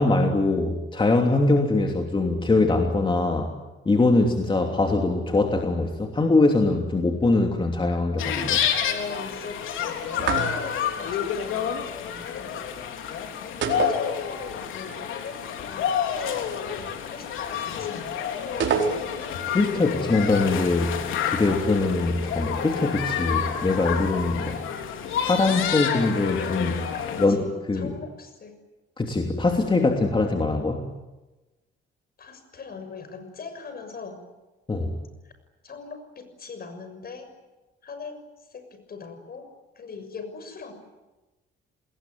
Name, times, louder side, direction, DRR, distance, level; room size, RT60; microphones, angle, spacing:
voice 1, 0.0-3.5 3.8-8.6 19.5-20.9 21.3-24.6 25.2-26.9 27.2-27.4 27.7-27.9 29.0-30.9 34.7-35.0, left 2 dB, 25° left, 2 dB, 3.1 m, -22 dB
Swimming Pool, 8.2-27.3, left 8 dB, 85° left, 3.7 m, -29 dB
voice 2, 8.8-12.6 13.8-18.2 18.5-19.0 19.6-20.7 26.9-28.5 32.2-34.2 35.2-35.3 35.6-37.3 37.8-39.5 39.7-40.7, left 4 dB, 50° left, 9 dB, 6.5 m, -40 dB
sound 1, 10.2-10.9 13.6-14.7 14.9-15.0 18.6-19.4, right 6 dB, 70° right, 4.4 m, -27 dB
28.5 x 21.0 x 9.5 m, 1.1 s
cardioid pair, 90°, 20 cm